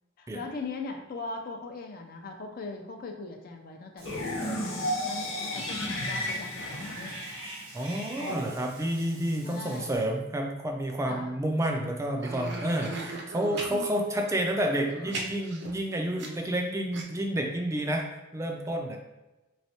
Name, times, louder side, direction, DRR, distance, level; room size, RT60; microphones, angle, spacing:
voice 1, 0.2-7.2 8.2-8.5 9.4-9.9 11.1-11.4 13.7-14.1, left 3 dB, 50° left, 3 dB, 0.5 m, -40 dB
sound 1, 4.0-8.0, left 1 dB, 75° left, 0.7 m, -33 dB
Cat / Bathtub (filling or washing), 4.0-10.0, right 1 dB, 80° right, 0.9 m, -44 dB
voice 2, 7.7-19.0, right 1 dB, 15° right, 2 dB, 0.3 m, -30 dB
sound 2, 12.2-13.7 14.6-16.6 16.9-17.0, right 3 dB, 60° right, 0.6 m, -37 dB
3.4 x 3.1 x 2.7 m, 1.0 s
head